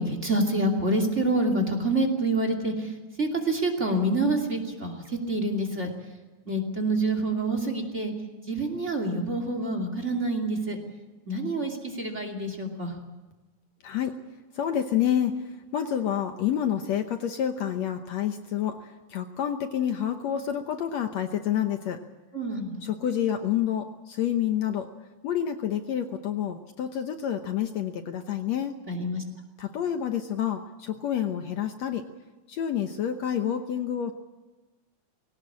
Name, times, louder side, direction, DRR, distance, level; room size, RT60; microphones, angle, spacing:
voice 1, 0.0-5.9 6.5-8.1 8.5-10.8 11.3-13.0 22.3-22.9 28.9-29.2, right 2 dB, 25° right, 5 dB, 2.7 m, -27 dB
voice 2, 13.8-14.1 14.6-15.3 15.7-18.8 19.1-22.0 22.8-24.9 25.2-28.7 29.6-32.0 32.5-34.1, left 10 dB, 65° left, 6 dB, 2.0 m, -28 dB
20.5 x 18.0 x 8.6 m, 1.2 s
omnidirectional pair, 3.7 m